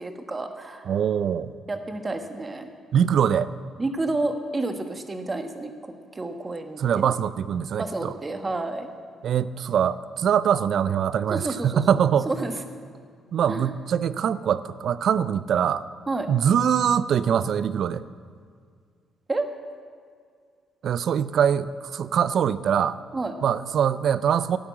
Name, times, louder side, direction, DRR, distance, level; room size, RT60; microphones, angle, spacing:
voice 1, 0.0-1.0 1.7-2.7 3.8-5.7 6.1-7.1 7.8-8.9 11.3-12.5 13.5-13.7 16.1-16.3 19.3-19.5 23.1-23.3, right 2 dB, 25° right, 6 dB, 1.2 m, -30 dB
voice 2, 0.9-1.5 2.9-3.5 6.8-8.1 9.2-12.3 13.3-15.8 16.3-18.0 20.8-23.0 23.4-24.6, right 8 dB, 65° right, 16 dB, 0.4 m, -23 dB
12.0 x 8.8 x 7.4 m, 2.1 s
cardioid pair, 90°, 0 cm